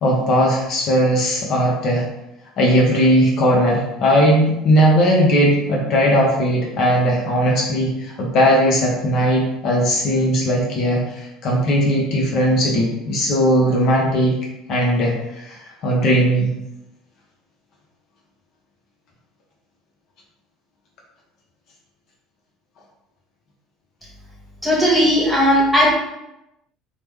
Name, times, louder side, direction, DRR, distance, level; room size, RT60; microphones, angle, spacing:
voice 1, 0.0-2.1 2.6-14.4 14.7-16.5, equal, 55° left, -2 dB, 0.7 m, -18 dB
voice 2, 24.6-25.9, equal, ahead, -5 dB, 1.1 m, -16 dB
3.1 x 2.1 x 3.4 m, 0.90 s
supercardioid pair, 100°, 0 cm